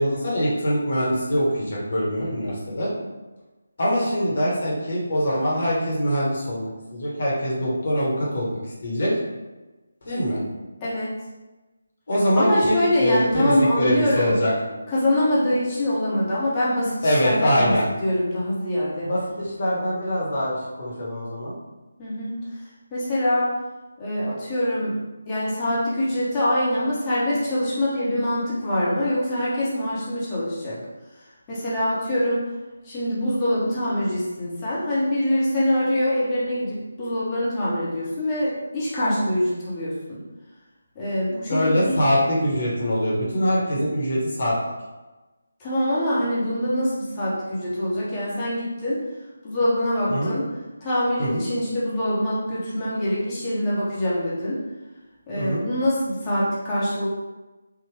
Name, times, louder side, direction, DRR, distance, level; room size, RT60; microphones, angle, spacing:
voice 1, 0.0-2.9 3.8-9.1 10.0-10.4 12.1-14.5 17.0-17.8 19.0-21.6 41.5-44.5 50.1-50.3 51.2-51.4 55.4-55.6, equal, 55° left, -5 dB, 1.4 m, -23 dB
voice 2, 10.8-11.1 12.4-14.3 14.9-19.1 22.0-22.3 22.9-23.5 24.0-25.0 25.3-30.8 31.5-32.4 32.8-40.2 40.9-42.0 45.6-49.0 49.4-50.4 50.8-54.6 55.3-57.1, left 1 dB, 20° left, -9 dB, 1.1 m, -24 dB
sound 1, 13.9-18.0, right 2 dB, 15° right, 0.4 m, -45 dB
3.7 x 2.5 x 3.3 m, 1.1 s
figure-of-eight pair, 155°, 0 cm